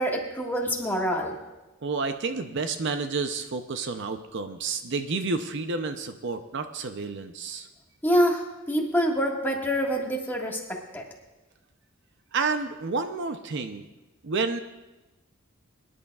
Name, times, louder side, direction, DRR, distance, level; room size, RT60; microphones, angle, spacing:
voice 1, 0.0-1.4 8.0-11.0, equal, 10° left, -1 dB, 1.6 m, -26 dB
voice 2, 1.8-7.7 12.3-13.9 14.2-14.6, right 4 dB, 60° right, 8 dB, 0.6 m, -30 dB
23.0 x 11.0 x 2.4 m, 1.1 s
head